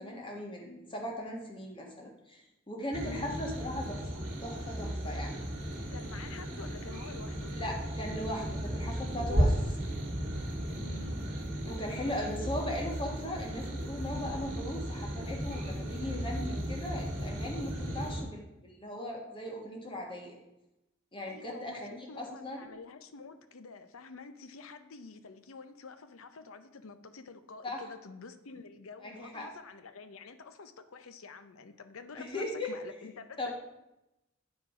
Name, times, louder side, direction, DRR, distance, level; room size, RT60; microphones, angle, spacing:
voice 1, 0.0-2.4 2.7-4.1 4.4-5.4 7.5-9.6 11.7-20.4 21.1-22.7 27.6-27.8 29.0-29.5 32.2-32.7 33.4-33.5, left 1 dB, 25° left, 1 dB, 1.5 m, -38 dB
sound 1, 2.9-18.2, equal, 45° right, 1.8 m, -35 dB
voice 2, 5.9-7.6 10.8-11.2 21.3-33.5, left 4 dB, 85° left, 11 dB, 0.6 m, -48 dB
9.4 x 4.8 x 4.9 m, 0.92 s
head